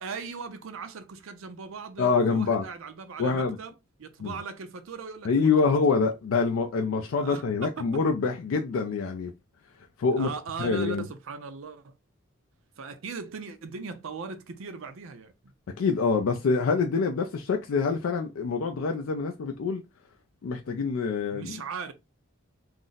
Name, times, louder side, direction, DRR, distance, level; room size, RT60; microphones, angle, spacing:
voice 1, 0.0-6.1 7.2-7.4 7.8-8.0 10.2-12.0 12.8-15.5 21.3-21.9, right 4 dB, 75° right, 0.5 m, -39 dB
voice 2, 2.0-2.6 3.2-3.6 4.2-4.3 5.2-9.3 10.0-10.3 10.6-11.1 15.8-19.8 20.4-21.6, left 4 dB, 75° left, 0.4 m, -25 dB
2.4 x 2.0 x 3.8 m
head